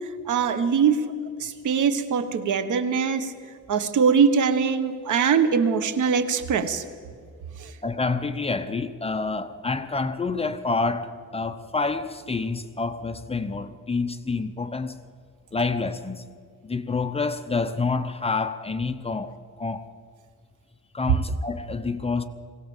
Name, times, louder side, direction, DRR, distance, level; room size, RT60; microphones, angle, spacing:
voice 1, 0.3-1.1 1.4-3.3 3.7-6.8 7.6-7.7, right 6 dB, 65° right, 1.4 m, -22 dB
voice 2, 7.8-15.0 15.5-16.3 16.6-19.9 20.9-22.3, left 4 dB, 20° left, 0.8 m, -28 dB
21.0 x 17.0 x 7.3 m
cardioid pair, 125°, 33 cm